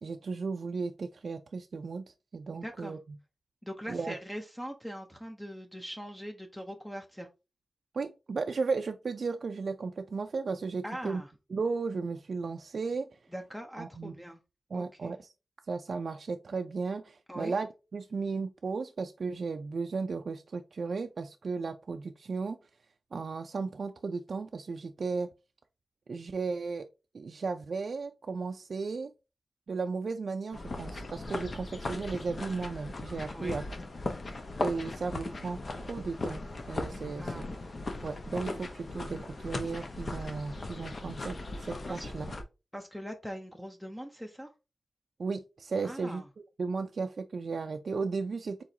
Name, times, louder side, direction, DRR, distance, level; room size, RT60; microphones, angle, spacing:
voice 1, 0.0-3.0 3.9-4.1 7.9-11.2 11.5-13.1 13.8-14.1 14.7-15.3 15.7-22.6 23.1-25.3 26.1-26.9 27.1-29.1 29.7-33.6 34.6-36.4 36.7-37.4 38.0-42.3 45.2-48.6, right 4 dB, 65° right, 0.4 m, -35 dB
voice 2, 2.6-3.0 3.6-7.3 10.8-11.3 13.3-14.4 14.7-15.1 17.3-17.5 33.3-33.6 37.2-37.5 41.9-42.1 42.7-44.5 45.8-46.3, equal, 5° left, 0.6 m, -41 dB
sound 1, 30.5-42.4, left 2 dB, 50° left, 0.9 m, -38 dB
4.7 x 3.9 x 2.7 m
wide cardioid pair, 125°, 0 cm